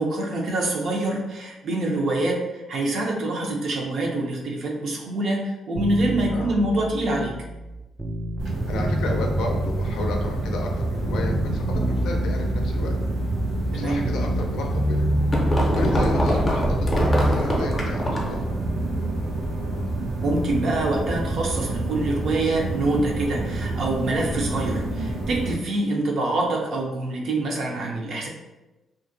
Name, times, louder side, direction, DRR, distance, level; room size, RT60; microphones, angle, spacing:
voice 1, 0.0-7.3 13.7-14.0 20.2-28.3, right 2 dB, 60° right, 0 dB, 0.5 m, -25 dB
sound 1, 5.8-8.4 8.7-10.8 11.1-14.5 14.7-17.4 17.7-17.8, equal, 15° right, 0.3 m, -27 dB
sound 2, 8.4-25.6, right 2 dB, 85° right, 0.9 m, -28 dB
voice 2, 8.7-12.9 13.7-15.1 15.7-18.5, left 3 dB, 85° left, 1 dB, 0.4 m, -33 dB
sound 3, 15.1-18.4, equal, 30° left, 0.6 m, -25 dB
2.5 x 2.1 x 2.5 m, 1.0 s
cardioid pair, 90°, 0 cm